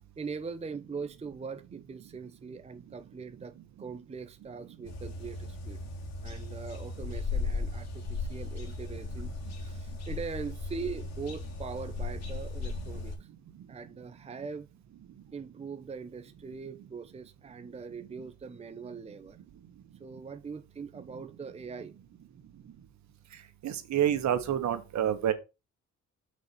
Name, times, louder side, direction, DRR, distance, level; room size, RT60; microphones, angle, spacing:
voice 1, 0.2-5.8 6.2-13.3 13.7-14.7 15.3-19.4 20.0-22.0, right 5 dB, 20° right, 0.7 m, -41 dB
sound 1, 4.8-13.2, left 3 dB, 60° left, 2.7 m, -37 dB
voice 2, 23.6-25.3, right 10 dB, 65° right, 1.4 m, -28 dB
6.3 x 4.3 x 6.5 m
cardioid pair, 90°, 30 cm